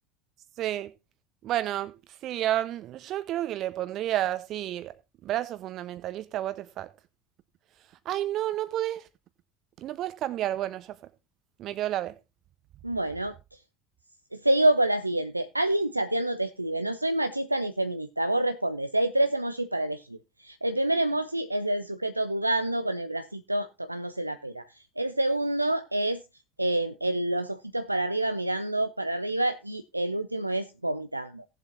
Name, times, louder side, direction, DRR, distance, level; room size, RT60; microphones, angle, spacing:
voice 1, 0.6-0.9 1.4-1.9 2.2-4.9 5.2-6.9 8.0-9.0 9.8-10.9 11.6-12.1, right 13 dB, 45° right, 1.1 m, -30 dB
voice 2, 12.8-13.4 14.3-24.7 25.0-26.2 26.6-31.5, right 1 dB, 90° right, 0.4 m, -27 dB
17.5 x 7.4 x 2.8 m
figure-of-eight pair, 70°, 0 cm